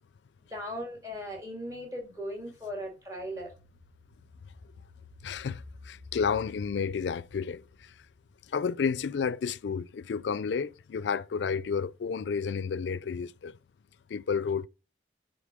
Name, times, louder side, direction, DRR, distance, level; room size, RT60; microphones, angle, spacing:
voice 1, 0.4-3.5, equal, 20° right, 2.3 m, -38 dB
sound 1, 3.2-8.8 9.2-9.3, left 2 dB, 85° right, 1.4 m, -52 dB
voice 2, 5.2-7.9 8.5-13.6 14.1-14.7, left 6 dB, 85° left, 0.4 m, -31 dB
9.5 x 3.8 x 5.0 m
head